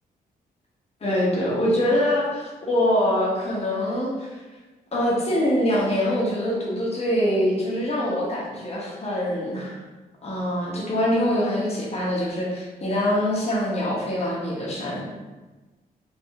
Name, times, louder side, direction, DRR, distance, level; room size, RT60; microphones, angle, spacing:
voice 1, 1.0-4.4 4.9-9.8 10.2-15.0, left 1 dB, 40° left, -5 dB, 1.2 m, -24 dB
4.2 x 3.1 x 3.4 m, 1.2 s
cardioid pair, 120°, 16 cm